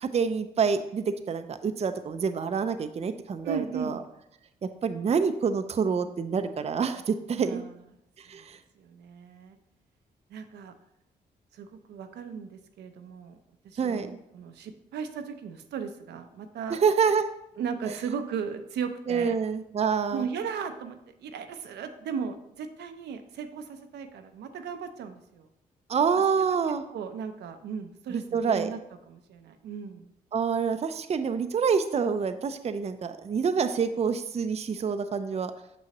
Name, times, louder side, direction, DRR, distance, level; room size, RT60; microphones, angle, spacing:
voice 1, 0.0-4.0 4.6-7.6 8.3-8.6 13.8-14.2 16.7-17.2 19.1-20.3 25.9-26.8 28.1-28.7 30.3-35.5, right 6 dB, 40° right, 9 dB, 0.5 m, -27 dB
voice 2, 3.4-4.1 7.4-7.8 8.3-8.5 8.7-9.6 10.3-10.7 11.5-13.4 13.6-16.8 17.6-19.3 20.1-25.5 26.4-26.6 26.9-28.8 29.1-30.1, right 6 dB, 75° right, 7 dB, 0.6 m, -36 dB
6.2 x 5.9 x 2.9 m, 0.82 s
supercardioid pair, 55°, 17 cm